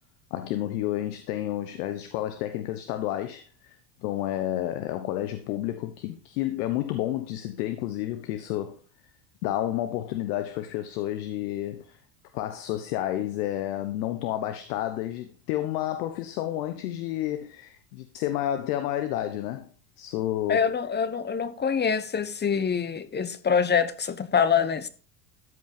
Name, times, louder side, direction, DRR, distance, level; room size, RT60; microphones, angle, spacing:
voice 1, 0.3-3.7 4.0-8.8 9.4-12.0 12.3-19.7 20.0-20.7, left 13 dB, 70° left, 1.2 m, -30 dB
voice 2, 20.5-24.9, left 6 dB, 20° left, 0.9 m, -25 dB
13.5 x 5.4 x 5.3 m
hypercardioid pair, 90°, 48 cm